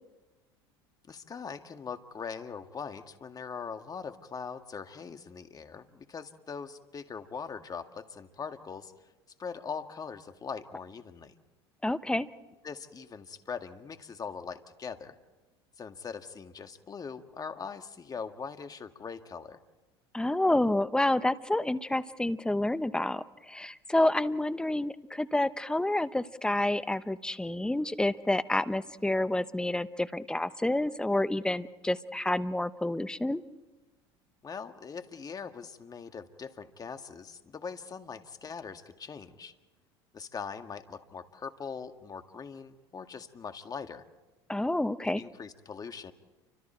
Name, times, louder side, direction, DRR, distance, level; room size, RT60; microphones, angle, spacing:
voice 1, 1.1-8.9 9.4-11.3 12.6-15.2 15.8-19.6 34.4-39.5 40.1-44.0 45.1-46.1, left 6 dB, 30° left, 7 dB, 1.9 m, -41 dB
voice 2, 11.8-12.3 20.1-33.4 44.5-45.2, left 1 dB, 5° left, 13 dB, 1.1 m, -29 dB
29.5 x 26.0 x 4.6 m, 1.1 s
hypercardioid pair, 85°, 13 cm